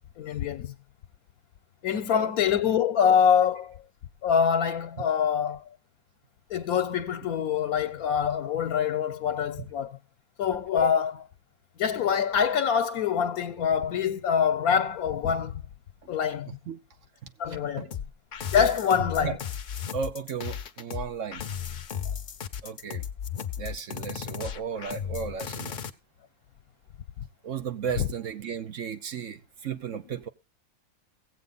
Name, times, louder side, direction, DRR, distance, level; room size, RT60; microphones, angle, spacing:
voice 1, 0.2-0.7 1.8-3.8 4.2-5.6 6.5-10.0 10.4-11.3 11.8-15.6 16.1-16.5 17.4-17.9 18.5-19.4 28.0-28.1, left 7 dB, 85° left, 1.2 m, -25 dB
voice 2, 1.9-2.3 16.7-16.8 17.5-17.9 19.2-19.3 19.9-21.4 22.6-23.0 23.6-25.8 27.4-30.3, right 7 dB, 65° right, 1.1 m, -35 dB
sound 1, 17.9-25.9, left 8 dB, 50° left, 0.7 m, -35 dB
16.0 x 8.1 x 4.0 m
omnidirectional pair, 1.5 m